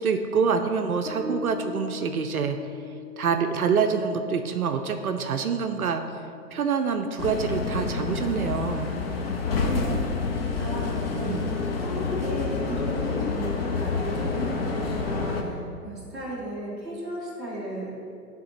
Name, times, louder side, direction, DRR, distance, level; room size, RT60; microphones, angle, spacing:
voice 1, 0.0-2.6 3.2-6.0 6.5-8.9 9.5-9.7 11.2-11.4, right 6 dB, 65° right, 7 dB, 0.5 m, -26 dB
Bass guitar, 1.1-8.2, left 4 dB, 75° left, 1.1 m, -41 dB
sound 1, 7.2-15.4, left 4 dB, 40° left, 0.5 m, -28 dB
voice 2, 9.6-10.0 10.4-11.5 11.8-17.9, right 1 dB, ahead, -13 dB, 0.6 m, -35 dB
10.5 x 3.6 x 2.9 m, 2.5 s
figure-of-eight pair, 125°, 48 cm